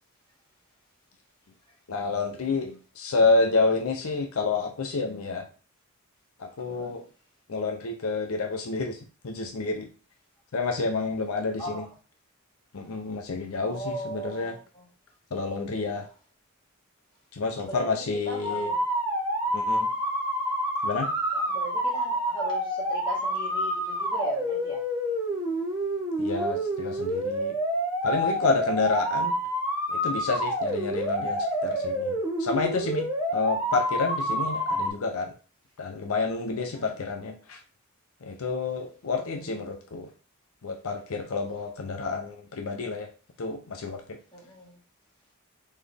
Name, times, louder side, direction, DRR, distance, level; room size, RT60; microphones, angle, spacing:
voice 1, 1.9-5.4 6.4-7.0 7.5-9.9 10.5-11.8 12.7-14.6 15.3-16.1 17.3-18.7 19.5-19.9 20.8-21.1 26.2-27.5 28.0-29.3 29.9-35.3 35.8-37.6 38.2-40.1 40.6-43.1 43.4-44.2, left 3 dB, 75° left, 4 dB, 0.6 m, -29 dB
voice 2, 13.6-14.9 17.6-17.9 18.2-18.8 21.3-24.8 36.6-37.0 39.2-39.8 44.3-44.8, right 1 dB, 20° left, -5 dB, 1.7 m, -38 dB
sound 1, 18.4-34.9, equal, 10° right, 0.8 m, -28 dB
4.0 x 3.1 x 3.4 m, 0.36 s
head